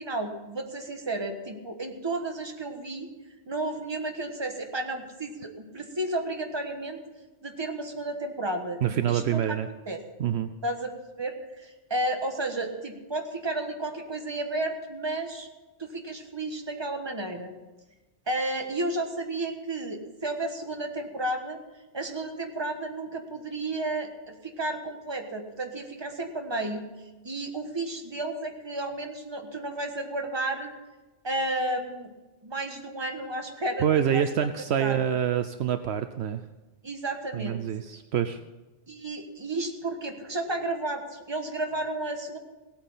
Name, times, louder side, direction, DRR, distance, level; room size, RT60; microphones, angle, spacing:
voice 1, 0.0-3.1 3.5-7.0 7.4-9.6 9.9-10.0 10.6-15.5 15.8-17.5 18.3-21.6 21.9-26.8 27.2-30.7 31.2-32.1 32.4-34.2 34.8-35.1 36.8-37.6 38.9-42.4, right 2 dB, 25° right, 4 dB, 1.3 m, -32 dB
voice 2, 8.8-9.7 10.2-10.5 33.8-36.4 37.3-38.4, right 9 dB, 70° right, 10 dB, 0.8 m, -26 dB
17.5 x 8.7 x 5.6 m, 1.1 s
omnidirectional pair, 1.2 m